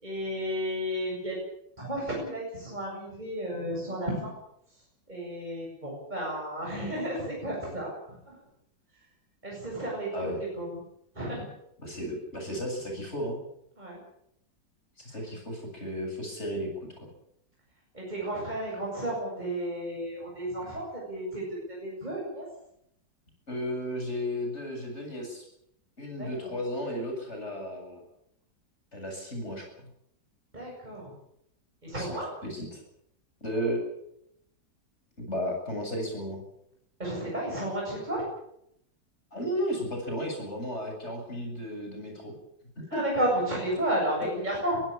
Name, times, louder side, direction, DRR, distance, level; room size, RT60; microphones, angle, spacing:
voice 1, 0.0-1.4 1.8-4.3 5.1-7.9 8.3-8.4 9.4-10.8 11.1-11.5 13.8-14.0 17.9-22.5 26.2-26.5 30.5-31.1 31.8-32.3 37.0-38.2 42.9-44.8, right 1 dB, 25° right, -3 dB, 8.1 m, -32 dB
voice 2, 11.8-13.4 15.0-16.7 17.0-17.1 23.5-25.4 26.0-28.0 28.9-29.7 31.9-32.2 32.4-32.8 33.4-33.9 35.2-36.4 39.3-42.3 42.8-43.0, equal, 35° left, 2 dB, 8.2 m, -34 dB
24.0 x 16.0 x 8.7 m, 0.75 s
omnidirectional pair, 1.9 m